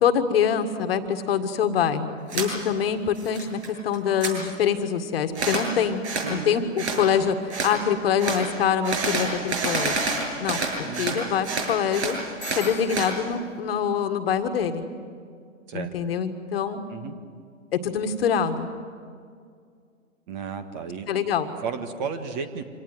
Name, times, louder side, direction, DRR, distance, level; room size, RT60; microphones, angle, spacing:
voice 1, 0.0-10.0 10.4-10.6 11.0-12.2 12.5-14.8 15.7-16.8 17.7-18.7 21.1-21.6, left 7 dB, 45° left, 8 dB, 1.7 m, -25 dB
sound 1, 2.3-2.5 2.9-3.7 3.9-4.3 5.3-5.7 6.0-6.3 6.8-7.0 7.5-7.7 8.2-8.4 8.8-11.2 11.4-13.1, right 4 dB, 55° right, 7.7 m, -28 dB
voice 2, 6.2-6.6 10.8-11.2 15.7-15.9 16.9-17.2 20.3-21.2 21.6-22.6, right 6 dB, 35° right, 9 dB, 1.7 m, -33 dB
Bicycle bell, 12.4-13.4, left 7 dB, 10° left, 2.6 m, -43 dB
26.0 x 18.0 x 9.4 m, 2.2 s
hypercardioid pair, 140°, 40 cm